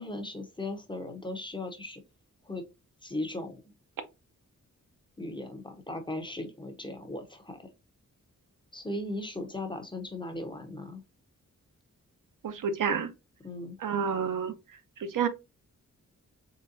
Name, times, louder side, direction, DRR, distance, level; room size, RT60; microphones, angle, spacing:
voice 1, 0.0-2.0 2.4-2.6 3.0-3.6 5.2-7.7 8.7-11.0 13.4-13.8, left 2 dB, 15° left, 0.7 m, -37 dB
voice 2, 12.4-13.1 13.8-14.5 15.0-15.3, right 6 dB, 80° right, 0.7 m, -29 dB
3.9 x 3.2 x 2.6 m
wide cardioid pair, 130°, 32 cm